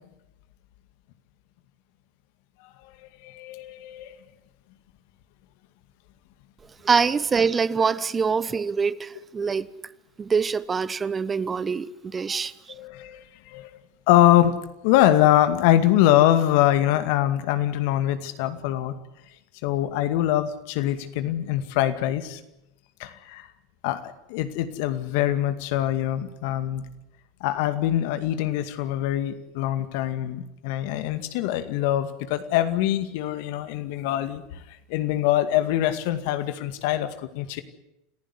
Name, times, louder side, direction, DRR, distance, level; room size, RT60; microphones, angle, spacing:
voice 1, 3.2-4.2 12.7-13.7 14.1-14.6 14.8-18.9 19.6-22.4 23.0-23.5 23.8-26.8 27.4-34.4 34.9-37.6, left 13 dB, 65° left, 2.2 m, -23 dB
voice 2, 6.8-9.7 10.2-12.5, right 5 dB, 25° right, 1.0 m, -24 dB
27.0 x 15.5 x 9.9 m
hypercardioid pair, 90°, 0 cm